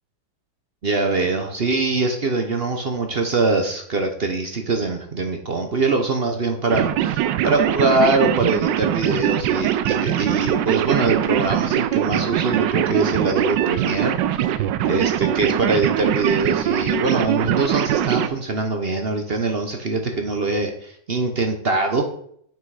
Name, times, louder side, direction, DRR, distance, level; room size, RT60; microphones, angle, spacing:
voice 1, 0.8-22.0, right 3 dB, 60° right, 5 dB, 0.6 m, -23 dB
sound 1, 6.7-18.3, right 11 dB, 75° right, 1.1 m, -22 dB
7.5 x 6.0 x 4.8 m, 0.65 s
omnidirectional pair, 2.3 m